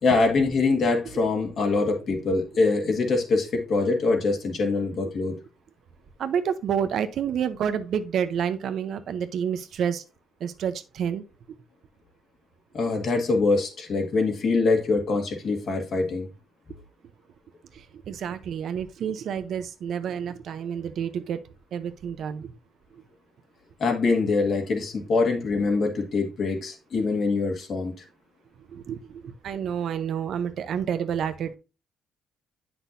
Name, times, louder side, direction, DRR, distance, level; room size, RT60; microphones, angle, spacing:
voice 1, 0.0-5.4 12.7-16.3 23.8-27.9, left 3 dB, 60° left, 1.9 m, -24 dB
voice 2, 6.2-10.0 10.4-11.2 12.9-13.0 14.5-14.6 17.7-21.4 21.7-22.5 28.6-31.6, right 8 dB, 70° right, 0.7 m, -29 dB
8.2 x 6.0 x 2.6 m
cardioid pair, 90°, 0 cm